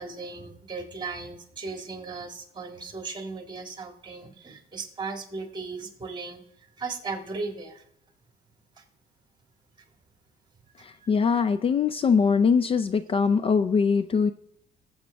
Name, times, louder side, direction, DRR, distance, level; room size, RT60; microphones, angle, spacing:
voice 1, 0.0-7.8 8.8-8.9 10.8-11.1, right 4 dB, 25° right, 4 dB, 1.9 m, -37 dB
voice 2, 10.8-14.3, left 5 dB, 35° left, 12 dB, 0.4 m, -22 dB
19.5 x 7.9 x 3.4 m, 0.74 s
cardioid pair, 110°, 17 cm